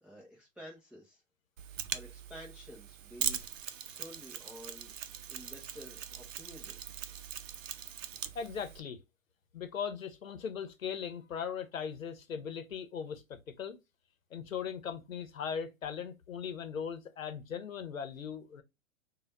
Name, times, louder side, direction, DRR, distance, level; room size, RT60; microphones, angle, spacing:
voice 1, 0.0-1.2 1.9-3.5 3.9-4.9 5.3-6.7, equal, ahead, 0.5 m, -51 dB
Mechanisms, 1.6-8.8, right 9 dB, 70° right, 0.6 m, -41 dB
voice 2, 8.3-9.0 9.5-13.8 14.3-18.6, left 7 dB, 85° left, 0.8 m, -39 dB
3.4 x 2.3 x 3.9 m
hypercardioid pair, 125°, 39 cm